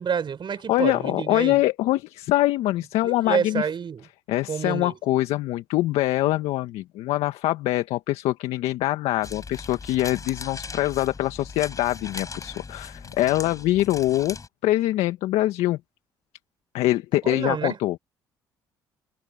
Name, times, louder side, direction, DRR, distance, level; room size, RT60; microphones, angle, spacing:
voice 1, 0.0-1.6 3.0-4.1 4.5-4.9 17.2-17.8, right 7 dB, 50° right, 4.7 m, -28 dB
voice 2, 0.7-3.7 4.3-14.4 14.6-15.8 16.7-18.0, left 16 dB, 75° left, 1.8 m, -24 dB
sound 1, 9.2-14.5, left 4 dB, 30° left, 4.3 m, -39 dB
hypercardioid pair, 55°, 11 cm